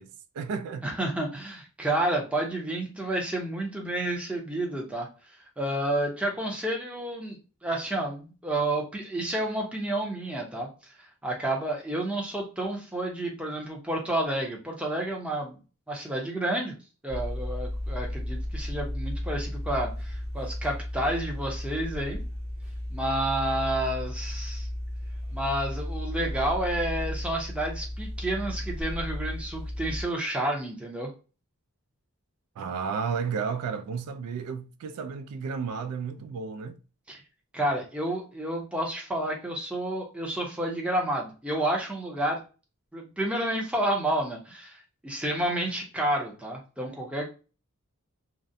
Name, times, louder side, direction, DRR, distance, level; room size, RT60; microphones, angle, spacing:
voice 1, 0.0-0.9 32.6-36.8, right 6 dB, 85° right, 0.3 m, -33 dB
voice 2, 0.8-5.1 5.6-10.7 11.2-15.6 15.9-16.7 17.0-22.2 22.9-24.7 25.3-31.1 37.1-37.2 37.5-42.4 42.9-47.2, right 1 dB, 5° right, 0.6 m, -30 dB
sound 1, 17.1-30.0, left 1 dB, 35° right, 1.1 m, -34 dB
2.4 x 2.1 x 2.6 m
head